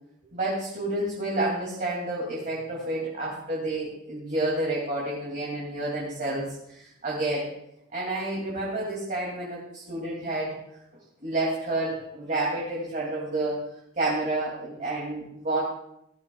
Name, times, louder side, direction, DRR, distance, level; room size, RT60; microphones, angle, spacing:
voice 1, 0.3-7.5 7.9-10.5 11.2-13.7 14.0-15.6, right 2 dB, 40° right, -4 dB, 2.5 m, -29 dB
18.0 x 12.5 x 2.3 m, 0.82 s
head